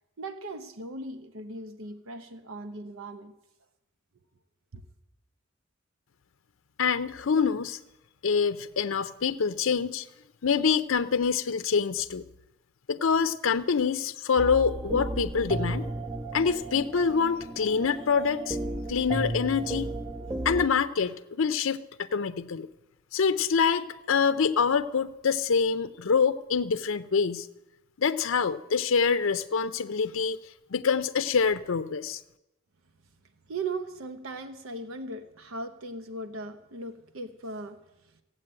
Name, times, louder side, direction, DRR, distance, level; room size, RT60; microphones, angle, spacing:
voice 1, 0.2-3.3 4.7-4.8 33.5-38.1, right 2 dB, 90° right, 10 dB, 0.9 m, -38 dB
voice 2, 6.8-7.8 8.2-10.1 10.4-12.2 12.9-15.9 16.3-18.6 18.9-19.9 20.4-22.7 23.1-27.5 28.0-30.4 30.7-32.2, left 6 dB, 75° left, 9 dB, 0.5 m, -26 dB
sound 1, 14.4-20.7, right 2 dB, 15° right, 0.5 m, -34 dB
15.0 x 8.2 x 8.8 m, 0.94 s
head